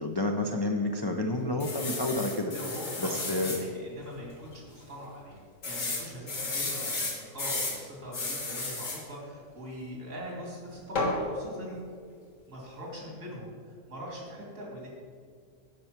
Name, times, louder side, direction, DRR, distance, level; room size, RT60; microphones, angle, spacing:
voice 1, 0.0-2.5 3.0-3.6, left 2 dB, 40° left, 2 dB, 0.3 m, -29 dB
sound 1, 1.6-3.6 4.2-4.3 4.5-4.6 5.6-7.8 8.1-9.0 11.0-11.2, left 3 dB, 75° left, 2.0 m, -33 dB
voice 2, 2.5-5.4 5.6-11.8 12.5-14.9, equal, 80° right, -3 dB, 2.9 m, -42 dB
9.3 x 5.6 x 5.9 m, 2.1 s
omnidirectional pair, 1.3 m